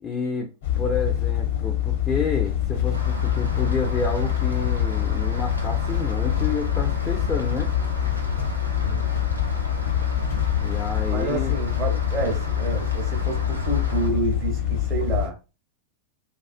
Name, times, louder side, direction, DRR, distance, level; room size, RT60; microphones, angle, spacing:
voice 1, 0.0-0.5 0.8-7.7 10.6-11.6, left 4 dB, 20° left, 0.5 m, -29 dB
sound 1, 0.6-15.3, left 10 dB, 55° left, 0.8 m, -25 dB
Rain, 2.9-14.1, right 3 dB, 85° right, 0.5 m, -36 dB
voice 2, 8.8-9.4 11.1-15.3, right 3 dB, 30° right, 0.7 m, -29 dB
2.3 x 2.3 x 2.4 m
figure-of-eight pair, 90°, 0 cm